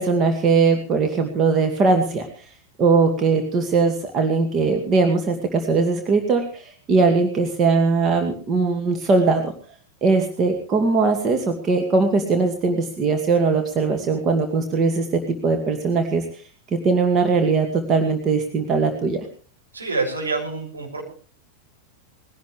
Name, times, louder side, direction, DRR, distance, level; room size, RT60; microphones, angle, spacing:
voice 1, 0.0-2.3 2.8-9.5 10.0-16.2 16.7-19.2, right 4 dB, 30° right, 4 dB, 2.3 m, -20 dB
voice 2, 19.7-21.0, right 3 dB, 75° right, 1 dB, 6.8 m, -26 dB
20.5 x 17.0 x 3.4 m, 0.40 s
figure-of-eight pair, 90°, 0 cm